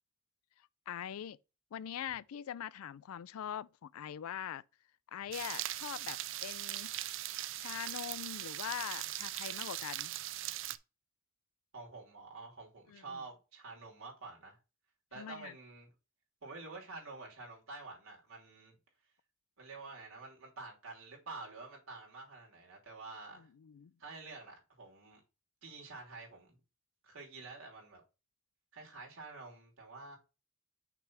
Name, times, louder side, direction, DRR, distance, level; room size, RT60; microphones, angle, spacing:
voice 1, 0.9-1.4 1.7-4.6 5.1-6.9 7.5-10.1 12.9-13.2 15.2-15.5 23.4-23.9, left 9 dB, 90° left, 0.4 m, -43 dB
sound 1, 5.3-10.8, right 14 dB, 60° right, 0.4 m, -40 dB
voice 2, 11.7-14.6 15.1-15.9 16.4-18.7 19.6-23.5 24.0-25.2 25.6-26.6 27.0-28.0 28.7-30.2, right 3 dB, 80° right, 3.0 m, -49 dB
6.0 x 3.4 x 5.8 m
head